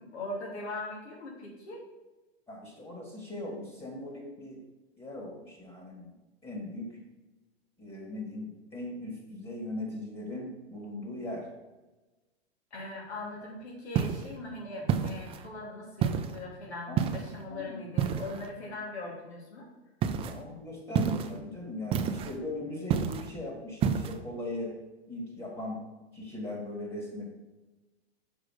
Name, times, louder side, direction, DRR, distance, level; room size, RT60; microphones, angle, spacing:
voice 1, 0.0-1.8 12.7-19.7, left 2 dB, 80° left, -1 dB, 2.5 m, -40 dB
voice 2, 2.5-4.6 5.0-6.1 6.4-7.0 7.8-11.5 16.9-17.2 17.5-18.0 20.2-24.8 25.1-25.8 26.1-27.3, left 1 dB, 15° left, -1 dB, 1.9 m, -39 dB
sound 1, 13.9-14.3 14.9-15.5 16.0-16.4 17.0-17.4 18.0-18.5 20.0-20.4 20.9-21.4 21.9-22.4 22.9-23.3 23.8-24.2, right 7 dB, 20° right, 0.4 m, -29 dB
6.2 x 4.9 x 4.8 m, 1.1 s
hypercardioid pair, 110°, 32 cm